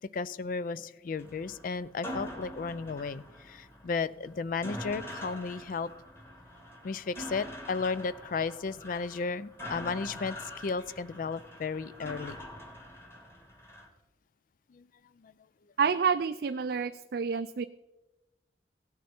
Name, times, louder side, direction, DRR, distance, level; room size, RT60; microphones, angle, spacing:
voice 1, 0.1-5.9 6.8-12.4 14.7-14.9 15.2-15.3, left 4 dB, 50° left, 17 dB, 0.4 m, -34 dB
sound 1, 1.2-13.9, equal, 15° left, 1.7 m, -44 dB
voice 2, 15.8-17.6, right 6 dB, 60° right, 9 dB, 0.4 m, -28 dB
16.5 x 9.4 x 4.4 m, 1.1 s
head